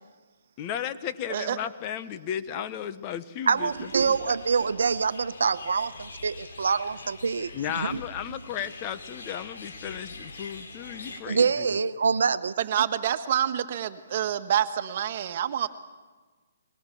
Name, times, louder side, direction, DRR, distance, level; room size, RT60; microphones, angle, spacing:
voice 1, 0.6-4.4 7.5-11.8, left 9 dB, 30° left, 11 dB, 1.1 m, -35 dB
sound 1, 3.5-11.2, left 3 dB, 65° left, 4.3 m, -44 dB
voice 2, 3.5-7.5 7.8-8.0 11.3-12.5, right 5 dB, 75° right, 13 dB, 1.0 m, -25 dB
voice 3, 12.6-15.7, right 10 dB, 45° right, 9 dB, 1.5 m, -27 dB
22.0 x 21.5 x 7.0 m, 1.3 s
hypercardioid pair, 150°, 0 cm